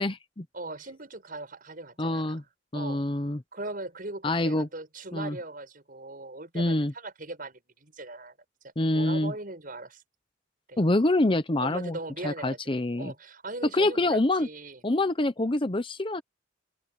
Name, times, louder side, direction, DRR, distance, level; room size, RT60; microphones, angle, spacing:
voice 1, 0.0-0.5 2.0-2.4 2.7-3.4 4.2-4.7 5.1-5.4 6.5-6.9 8.8-9.3 10.8-12.0 12.2-13.1 13.7-14.5 14.8-16.2, left 2 dB, 30° left, 0.8 m, -26 dB
voice 2, 0.5-2.4 2.7-3.0 3.5-8.4 8.9-10.0 10.7-10.8 11.6-12.7 13.0-14.8, right 2 dB, 50° right, 6.9 m, -39 dB
open air
head